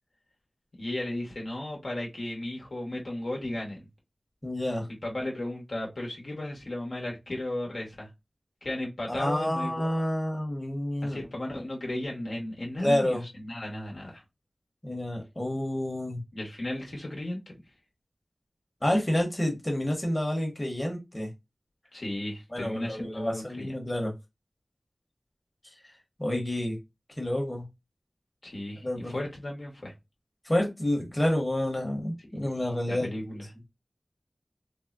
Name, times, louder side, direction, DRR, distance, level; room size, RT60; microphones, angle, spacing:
voice 1, 0.8-3.8 5.0-8.1 8.6-10.1 11.0-14.2 16.3-17.5 21.9-23.7 28.4-29.9 32.9-33.5, left 1 dB, 80° left, 0.9 m, -35 dB
voice 2, 4.4-4.9 9.1-11.2 12.8-13.2 14.8-16.2 18.8-21.3 22.5-24.1 26.2-26.8 27.2-27.6 28.8-29.1 30.4-33.2, left 1 dB, 25° left, 0.9 m, -29 dB
3.5 x 2.0 x 2.3 m
wide cardioid pair, 60°, 0 cm